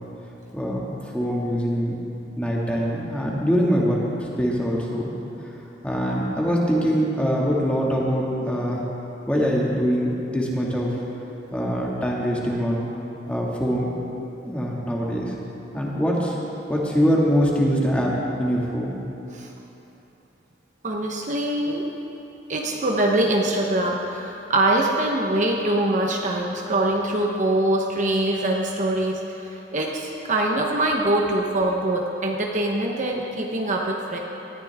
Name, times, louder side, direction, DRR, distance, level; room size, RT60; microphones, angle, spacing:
voice 1, 0.5-2.0 2.4-4.0 4.4-5.1 5.8-8.8 9.3-10.9 11.5-12.8 13.3-13.9 14.4-15.3 15.7-16.3 16.7-18.1 18.4-18.9, equal, 5° left, -4 dB, 2.0 m, -23 dB
voice 2, 20.8-21.9 22.5-34.2, right 1 dB, 40° right, 0 dB, 1.0 m, -23 dB
19.0 x 13.5 x 3.6 m, 3.0 s
head